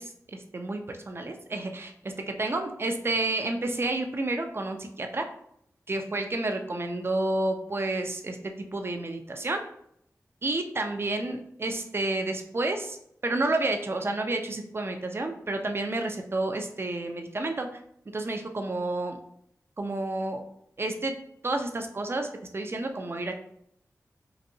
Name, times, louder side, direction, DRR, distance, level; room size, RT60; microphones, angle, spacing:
voice 1, 0.0-5.3 5.9-9.6 10.4-13.0 13.2-17.7 18.1-19.2 19.8-20.4 20.8-21.1 21.4-22.3 22.5-23.3, right 2 dB, 40° right, 5 dB, 0.5 m, -30 dB
4.0 x 2.6 x 2.6 m, 0.72 s
wide cardioid pair, 60°, 6 cm